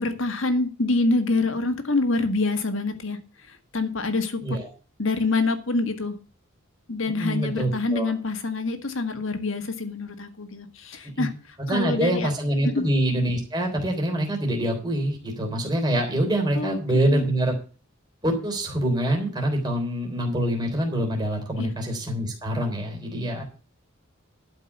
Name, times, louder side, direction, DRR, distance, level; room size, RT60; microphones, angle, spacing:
voice 1, 0.0-4.6 5.0-6.2 6.9-11.3 11.7-12.3 12.8-12.9 16.5-17.2 21.6-21.7, left 3 dB, 70° left, 8 dB, 1.7 m, -26 dB
voice 2, 7.1-8.1 11.2-11.3 11.7-17.6 18.2-23.4, right 1 dB, 20° right, 1 dB, 3.6 m, -25 dB
12.0 x 5.3 x 8.1 m, 0.37 s
head